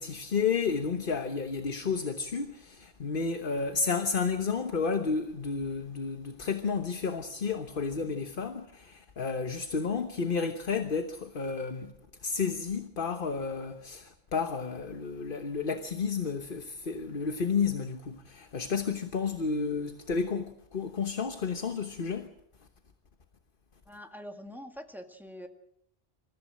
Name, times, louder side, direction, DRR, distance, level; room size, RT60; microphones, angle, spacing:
voice 1, 0.0-11.9 12.2-22.3, left 5 dB, 50° left, 1.3 m, -31 dB
voice 2, 23.9-25.5, equal, ahead, 1.9 m, -44 dB
27.0 x 15.0 x 7.6 m
omnidirectional pair, 1.2 m